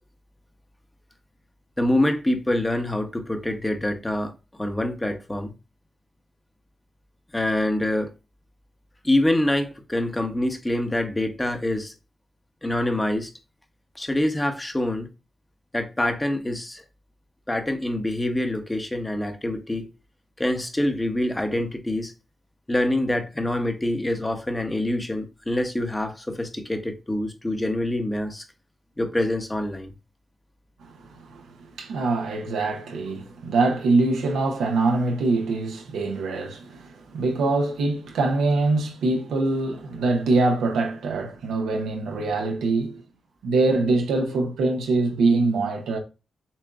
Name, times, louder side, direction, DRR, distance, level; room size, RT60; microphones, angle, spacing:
voice 1, 1.8-4.3 4.6-5.5 7.3-8.1 9.0-11.9 12.6-13.3 13.9-15.1 15.7-16.8 17.5-19.9 20.4-22.1 22.7-28.4 29.0-29.9, left 1 dB, 15° left, 0.9 m, -25 dB
voice 2, 30.8-31.5 31.8-43.0 43.4-46.0, right 3 dB, 90° right, 0.9 m, -24 dB
7.1 x 2.4 x 2.4 m
cardioid pair, 55°, 0 cm